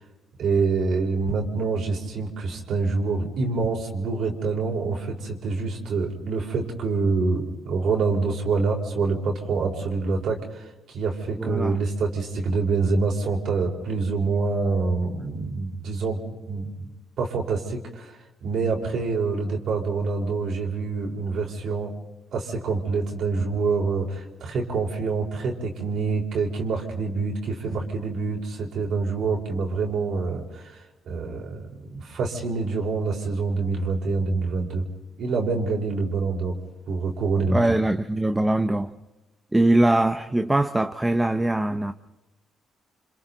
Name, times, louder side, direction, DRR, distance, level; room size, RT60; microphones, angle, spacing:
voice 1, 0.4-16.2 16.5-16.9 17.2-22.0 22.3-30.8 31.1-34.8 35.2-36.5 36.9-37.6, right 4 dB, 70° right, 4.4 m, -26 dB
voice 2, 11.4-11.8 37.5-38.9 39.5-41.9, right 1 dB, 15° right, 0.8 m, -22 dB
29.0 x 26.0 x 4.0 m
cardioid pair, 90°, 0 cm